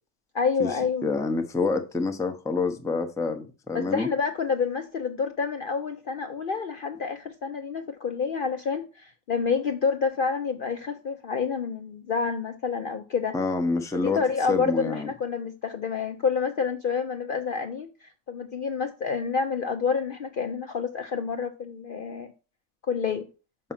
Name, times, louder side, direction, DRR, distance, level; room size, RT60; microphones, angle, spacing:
voice 1, 0.3-1.1 3.7-13.4 13.9-22.3 22.9-23.3, left 5 dB, 50° left, 6 dB, 0.7 m, -28 dB
voice 2, 1.0-4.1 13.3-14.2 14.5-15.1, left 3 dB, 5° left, 5 dB, 0.6 m, -27 dB
6.1 x 5.5 x 5.8 m, 0.33 s
omnidirectional pair, 1.4 m